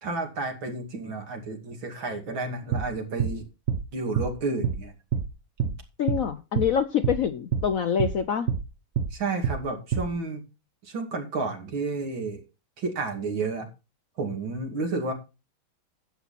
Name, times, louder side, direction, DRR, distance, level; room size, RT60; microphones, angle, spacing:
voice 1, 0.0-3.4 3.9-4.9 5.6-5.7 9.1-10.4 10.8-12.4 12.8-13.7 14.2-15.1, right 3 dB, 75° right, 3.3 m, -31 dB
sound 1, 2.7-2.9 3.2-3.4 3.7-3.8 4.2-4.3 4.6-4.8 5.1-5.3 5.6-5.8 6.1-6.2 6.5-6.7 7.0-7.2 7.5-7.7 8.0-8.2 8.5-8.6 9.0-9.1 9.4-9.6 9.9-10.1, right 7 dB, 45° right, 1.0 m, -26 dB
voice 2, 6.0-8.5, left 8 dB, 65° left, 0.8 m, -25 dB
12.0 x 8.5 x 4.2 m
omnidirectional pair, 2.2 m